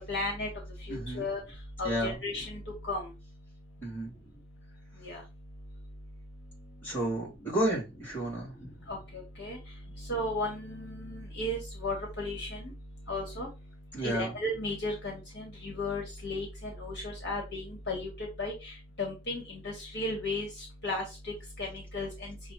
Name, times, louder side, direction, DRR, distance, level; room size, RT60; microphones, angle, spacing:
voice 1, 0.1-0.5 0.9-1.4 1.8-2.6 2.9-3.0 5.0-5.2 8.9-9.0 9.4-9.6 10.1-12.7 13.1-13.5 14.0-16.5 16.8-18.1 18.4-18.5 19.0-20.5 20.8-21.0 21.6-21.7 21.9-22.1, left 2 dB, 55° left, -1 dB, 1.5 m, -34 dB
voice 2, 0.9-1.3 1.8-2.2 3.8-4.1 6.8-8.5 13.9-14.3, right 1 dB, 10° left, -6 dB, 2.4 m, -31 dB
6.0 x 2.3 x 3.0 m, 0.26 s
head